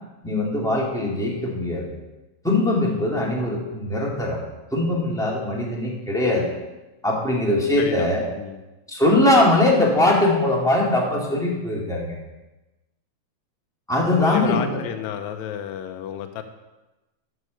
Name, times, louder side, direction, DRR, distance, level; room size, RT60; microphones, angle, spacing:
voice 1, 0.2-1.9 2.4-4.4 4.7-6.5 7.0-8.2 8.9-12.2 13.9-14.8, left 1 dB, ahead, -4 dB, 1.8 m, -21 dB
voice 2, 7.8-8.1 8.4-8.6 14.1-16.4, left 9 dB, 85° left, 7 dB, 2.0 m, -31 dB
12.5 x 5.5 x 6.8 m, 1.1 s
omnidirectional pair, 3.3 m